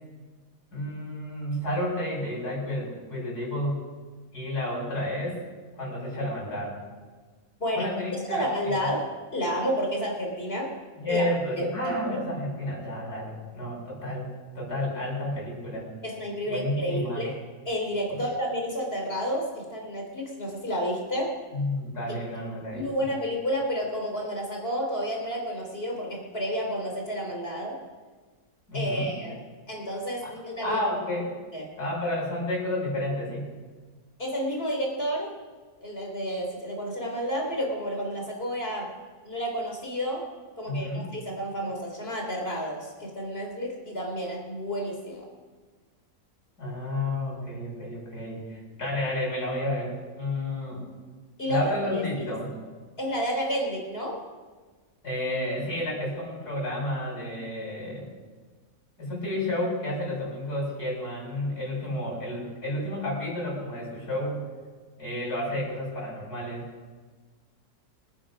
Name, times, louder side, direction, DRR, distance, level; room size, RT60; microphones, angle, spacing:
voice 1, 0.7-3.8 4.3-5.4 5.7-6.8 7.7-8.9 11.0-14.3 14.6-15.9 16.5-17.3 21.5-22.9 28.7-29.1 30.2-30.3 30.6-31.3 31.8-33.5 40.7-41.1 46.6-50.8 51.5-52.5 55.0-58.0 59.0-64.5 65.0-66.7, left 1 dB, 75° left, -4 dB, 7.5 m, -31 dB
voice 2, 7.6-7.9 8.3-10.7 11.1-11.2 11.5-12.2 16.0-17.3 17.7-21.4 22.7-27.8 28.7-29.4 29.7-30.8 31.5-31.7 34.2-35.3 35.8-38.9 39.2-40.2 40.6-45.3 51.4-52.4 53.0-54.2, equal, 40° left, 0 dB, 3.8 m, -30 dB
26.5 x 9.6 x 5.2 m, 1.4 s
omnidirectional pair, 1.7 m